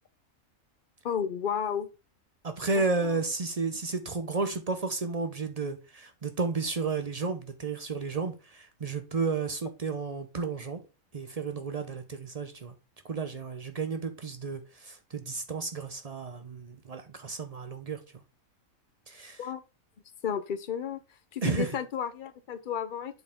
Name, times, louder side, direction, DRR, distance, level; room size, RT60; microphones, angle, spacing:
voice 1, 1.0-1.9 2.7-3.2 19.4-19.6 20.2-21.0 21.3-23.2, left 8 dB, 55° left, 0.6 m, -33 dB
voice 2, 2.4-10.8 11.1-12.7 13.1-18.0 19.1-19.4 21.4-21.8, right 4 dB, 45° right, 0.5 m, -32 dB
7.8 x 4.6 x 3.5 m
omnidirectional pair, 1.5 m